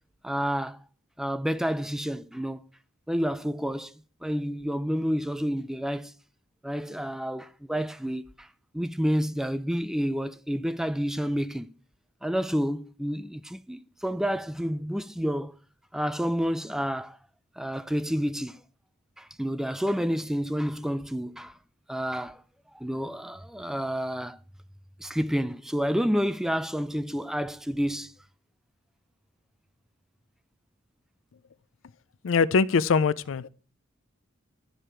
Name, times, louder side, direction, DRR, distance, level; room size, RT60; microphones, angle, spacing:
voice 1, 0.2-0.8 1.2-2.6 3.1-3.9 4.2-6.1 6.6-8.5 8.7-11.7 12.2-15.6 15.9-17.2 17.6-18.6 19.2-21.6 21.9-22.4 22.7-24.4 25.0-28.1, equal, ahead, 0.3 m, -29 dB
voice 2, 32.2-33.5, left 5 dB, 75° left, 0.4 m, -22 dB
13.0 x 5.0 x 4.4 m
head